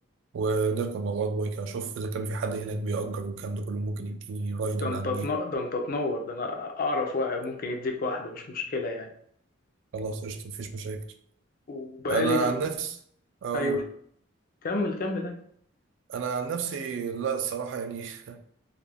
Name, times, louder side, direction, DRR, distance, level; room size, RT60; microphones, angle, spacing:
voice 1, 0.3-5.3 9.9-11.0 12.1-13.0 13.4-13.8 16.1-18.4, right 4 dB, 60° right, 0.3 m, -30 dB
voice 2, 4.8-9.1 11.7-12.5 13.5-13.8 14.6-15.4, left 2 dB, 45° left, 0.4 m, -30 dB
2.3 x 2.1 x 3.3 m
head